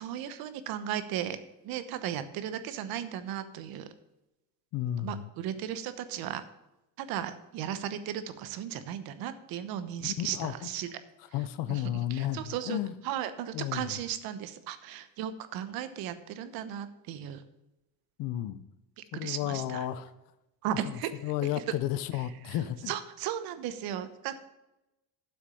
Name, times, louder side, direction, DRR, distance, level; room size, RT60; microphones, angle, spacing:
voice 1, 0.0-1.4 1.6-3.9 5.0-6.4 7.0-10.9 11.7-12.8 13.0-17.4 19.0-19.9 20.6-21.1 21.5-21.6 22.5-22.6 22.9-24.5, right 10 dB, 65° right, 11 dB, 1.0 m, -36 dB
voice 2, 4.7-5.3 10.0-10.5 11.3-12.9 13.5-14.0 18.2-18.6 19.1-20.1 20.8-22.9, left 12 dB, 55° left, 13 dB, 0.7 m, -33 dB
8.1 x 6.1 x 6.9 m, 0.95 s
cardioid pair, 160°, 39 cm